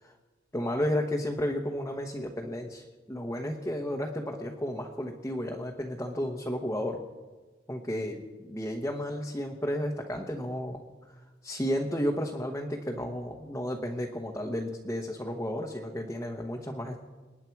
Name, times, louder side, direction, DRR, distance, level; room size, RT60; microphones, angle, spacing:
voice 1, 0.5-7.0 7.7-10.8 11.4-17.0, equal, 15° left, 0 dB, 1.0 m, -32 dB
27.5 x 9.6 x 4.7 m, 1.3 s
head